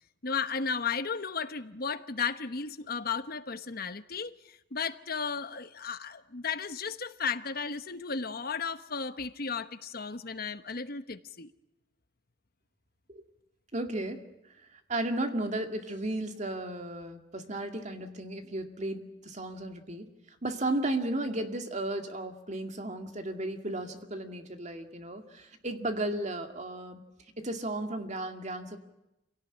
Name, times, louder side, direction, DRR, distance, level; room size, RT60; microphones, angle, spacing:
voice 1, 0.2-11.5, left 5 dB, 55° left, 11 dB, 1.1 m, -34 dB
voice 2, 13.7-27.0 27.4-28.8, right 1 dB, 40° right, 5 dB, 2.2 m, -34 dB
27.0 x 17.5 x 9.9 m, 0.90 s
head